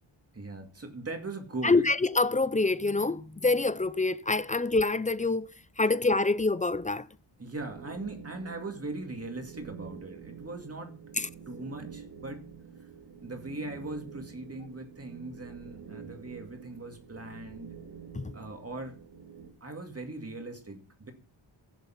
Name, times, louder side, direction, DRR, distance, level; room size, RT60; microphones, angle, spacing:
voice 1, 0.3-1.9 7.4-11.0 11.5-12.5 13.2-17.7 18.3-19.0 19.6-21.1, right 2 dB, 30° right, 2.3 m, -40 dB
voice 2, 1.6-5.5 5.8-7.0 11.2-11.3 18.2-18.3, left 3 dB, 15° left, 0.5 m, -26 dB
sound 1, 7.6-19.5, right 7 dB, 55° right, 2.5 m, -48 dB
16.0 x 6.9 x 5.8 m
wide cardioid pair, 135°, 49 cm